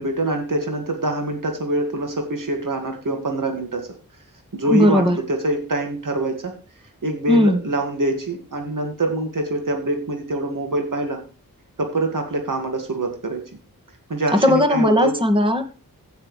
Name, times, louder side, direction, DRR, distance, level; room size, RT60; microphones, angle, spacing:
voice 1, 0.0-3.9 4.5-6.5 7.0-11.2 11.8-13.4 14.1-15.1, right 2 dB, 60° right, 3 dB, 2.0 m, -25 dB
voice 2, 4.7-5.2 7.3-7.6 14.4-15.6, left 1 dB, 15° right, 5 dB, 1.8 m, -17 dB
16.0 x 6.4 x 3.2 m, 0.35 s
wide cardioid pair, 50°, 35 cm